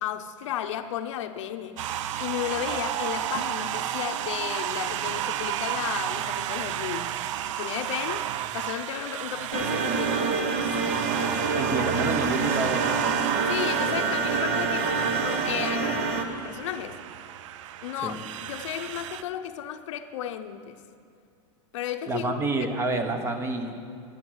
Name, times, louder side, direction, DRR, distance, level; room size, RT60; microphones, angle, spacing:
voice 1, 0.0-1.8 2.2-7.1 7.6-8.2 8.5-11.5 13.5-17.0 17.8-20.8 21.7-22.7, left 10 dB, 75° left, 7 dB, 0.7 m, -34 dB
sound 1, 1.8-19.2, right 11 dB, 75° right, 0.5 m, -32 dB
sound 2, 9.5-16.2, right 5 dB, 45° right, 1.1 m, -26 dB
voice 2, 11.6-13.0 18.0-18.2 22.1-23.8, right 2 dB, 15° right, 7 dB, 0.9 m, -28 dB
11.5 x 9.5 x 6.2 m, 2.4 s
supercardioid pair, 150°, 16 cm